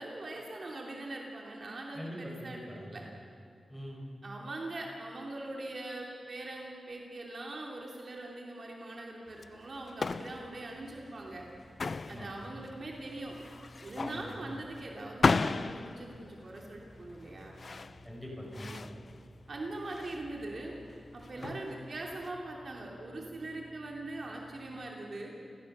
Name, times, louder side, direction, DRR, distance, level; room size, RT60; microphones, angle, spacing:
voice 1, 0.0-3.0 4.2-11.4 12.1-13.4 13.8-17.5 19.5-20.7 21.1-25.3, right 2 dB, 45° right, -1 dB, 2.9 m, -42 dB
voice 2, 1.9-3.1 3.7-4.0 12.1-12.3 14.0-14.4 18.0-18.9 21.3-21.5, equal, 5° left, -2 dB, 5.3 m, -43 dB
sound 1, 9.3-22.3, left 4 dB, 45° left, 0.5 m, -36 dB
sound 2, 10.0-24.9, equal, 25° left, 2.7 m, -57 dB
29.5 x 15.5 x 6.8 m, 2.6 s
wide cardioid pair, 140°, 0 cm